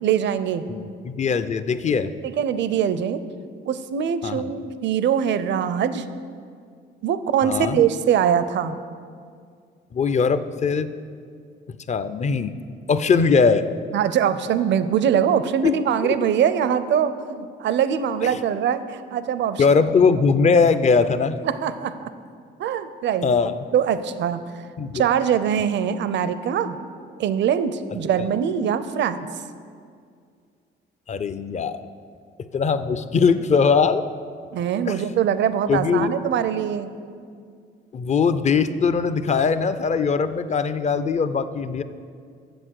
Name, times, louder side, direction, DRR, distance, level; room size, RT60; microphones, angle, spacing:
voice 1, 0.0-0.6 2.2-3.2 3.7-6.1 7.0-8.8 13.9-19.6 21.4-22.1 22.6-23.3 23.7-24.6 24.9-26.8 27.2-29.3 34.5-36.9, right 8 dB, 65° right, 13 dB, 0.5 m, -22 dB
voice 2, 0.7-2.1 4.2-4.5 7.4-7.8 9.9-10.9 11.9-12.5 12.9-13.6 15.6-15.7 16.0-16.1 18.2-18.3 19.6-21.4 23.2-23.6 24.8-25.1 28.2-28.3 31.1-31.8 32.5-34.0 34.9-35.0 35.7-36.1 37.9-41.8, left 5 dB, 35° left, 12 dB, 0.5 m, -20 dB
7.9 x 7.2 x 6.4 m, 2.2 s
cardioid pair, 90°, 20 cm